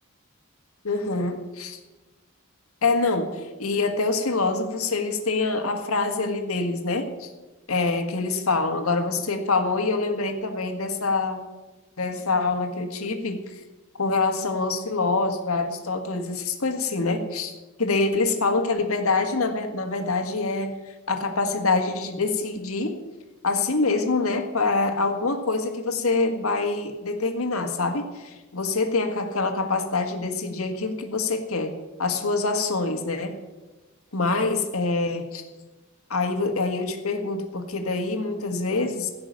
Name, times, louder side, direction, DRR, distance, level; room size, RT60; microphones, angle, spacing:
voice 1, 0.8-1.8 2.8-7.3 7.7-11.4 12.0-13.4 14.0-17.5 17.8-20.7 21.1-23.0 23.4-31.7 32.0-33.4 34.1-35.4 36.1-39.1, left 3 dB, 85° left, 5 dB, 1.7 m, -25 dB
16.0 x 6.1 x 9.0 m, 1.1 s
head